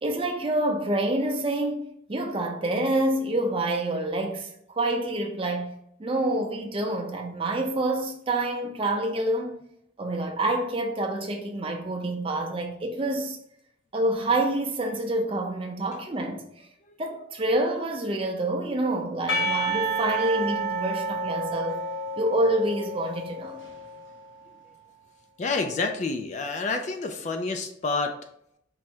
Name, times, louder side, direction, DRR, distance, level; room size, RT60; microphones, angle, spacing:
voice 1, 0.0-5.7 6.0-9.6 10.0-13.4 13.9-16.4 17.0-21.8 22.2-23.6, right 1 dB, 30° right, 0.6 m, -27 dB
Percussion, 19.3-24.1, right 2 dB, 75° left, 0.7 m, -30 dB
voice 2, 25.4-28.2, left 3 dB, 35° left, 0.3 m, -28 dB
4.7 x 2.1 x 4.3 m
head